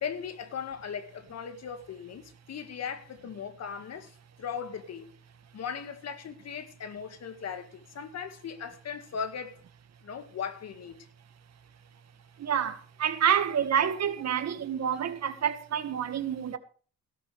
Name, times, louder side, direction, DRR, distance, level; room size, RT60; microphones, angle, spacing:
voice 1, 0.0-4.1 4.4-5.1 5.5-9.6 10.0-11.1, left 7 dB, 60° left, 2.1 m, -38 dB
voice 2, 12.4-16.6, right 8 dB, 60° right, 1.8 m, -28 dB
16.5 x 12.5 x 3.5 m
cardioid pair, 90°, 30 cm